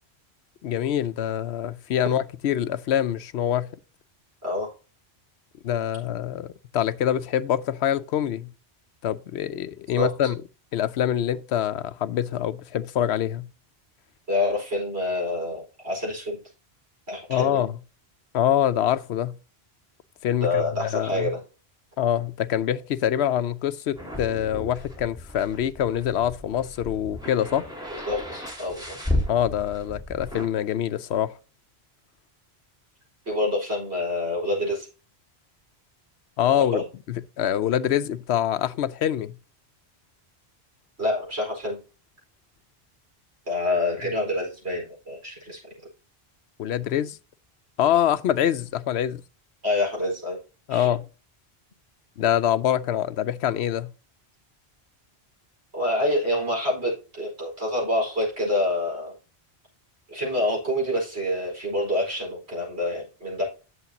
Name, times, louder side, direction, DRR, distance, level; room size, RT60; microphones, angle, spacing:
voice 1, 0.6-3.7 5.6-8.5 9.0-10.4 10.7-13.5 17.3-17.8 18.3-19.4 20.2-21.3 22.0-27.6 29.3-31.3 36.4-36.8 37.1-39.4 46.6-47.2 47.8-49.2 50.7-51.0 52.2-53.9, left 10 dB, 80° left, 0.9 m, -25 dB
voice 2, 14.3-16.4 17.1-17.6 20.4-21.4 27.9-29.0 33.2-34.9 36.5-36.8 41.0-41.8 43.5-45.6 49.6-50.4 50.7-50.9 55.7-59.1 60.1-63.4, left 1 dB, 85° right, 5.1 m, -27 dB
sound 1, 24.0-30.4, left 1 dB, 5° right, 3.9 m, -34 dB
10.5 x 7.2 x 2.8 m
omnidirectional pair, 1.1 m